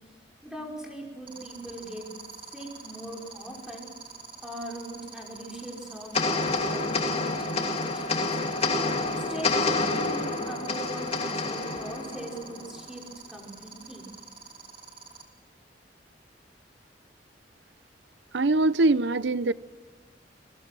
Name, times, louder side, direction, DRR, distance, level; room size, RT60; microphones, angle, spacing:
voice 1, 0.4-2.1 2.5-3.9 4.4-8.3 9.0-13.0 13.3-14.1, right 1 dB, 5° right, -1 dB, 5.4 m, -40 dB
sound 1, 1.3-15.2, right 5 dB, 30° right, 2.9 m, -45 dB
sound 2, 6.1-12.8, left 3 dB, 35° left, 2.4 m, -28 dB
voice 2, 18.3-19.5, right 2 dB, 80° right, 16 dB, 0.6 m, -22 dB
28.5 x 22.0 x 6.2 m, 1.4 s
head